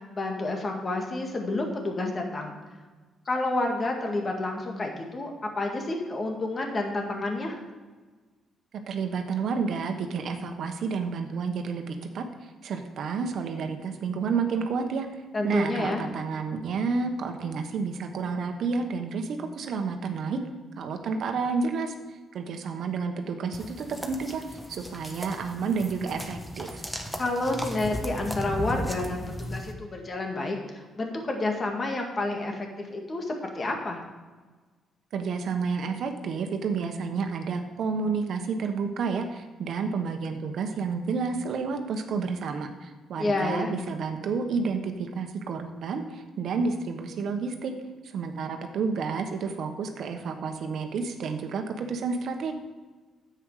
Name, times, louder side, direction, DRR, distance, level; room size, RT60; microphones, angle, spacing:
voice 1, 0.1-2.6 3.3-5.3 5.6-7.6 15.3-16.0 27.2-34.0 43.2-43.8, left 2 dB, 35° left, 2 dB, 1.9 m, -29 dB
voice 2, 8.9-15.1 15.4-20.4 20.8-21.9 22.3-26.9 35.1-47.7 48.0-52.5, right 5 dB, 65° right, 6 dB, 1.2 m, -30 dB
sound 1, 23.5-29.7, equal, 5° left, 1.3 m, -36 dB
10.0 x 8.1 x 4.9 m, 1.3 s
cardioid pair, 90°, 0 cm